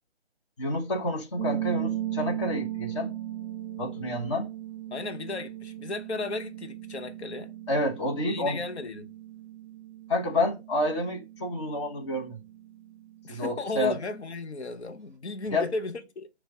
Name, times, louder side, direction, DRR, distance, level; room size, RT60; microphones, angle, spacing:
voice 1, 0.6-3.1 3.8-4.5 7.7-8.6 10.1-12.4 13.3-14.0 15.5-15.6, left 1 dB, 25° left, 1.1 m, -29 dB
sound 1, 1.4-14.2, right 12 dB, 20° right, 2.0 m, -37 dB
voice 2, 4.9-7.5 8.2-9.1 13.2-16.3, left 3 dB, 85° left, 0.8 m, -35 dB
6.4 x 2.4 x 3.5 m
figure-of-eight pair, 155°, 33 cm